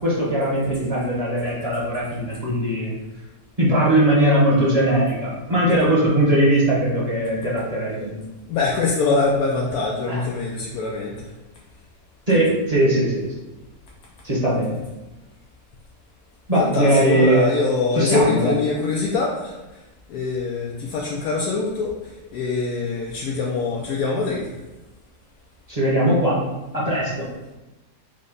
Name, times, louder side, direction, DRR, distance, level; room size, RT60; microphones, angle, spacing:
voice 1, 0.0-2.9 3.6-8.2 10.1-10.2 12.3-13.3 14.2-14.8 16.5-17.5 17.9-18.6 25.7-26.4 26.7-27.3, right 1 dB, 30° right, -6 dB, 1.0 m, -20 dB
voice 2, 8.5-11.1 16.6-19.5 20.1-21.9 22.3-24.5, left 3 dB, 80° left, -2 dB, 1.1 m, -23 dB
4.9 x 2.2 x 3.8 m, 1.0 s
omnidirectional pair, 1.6 m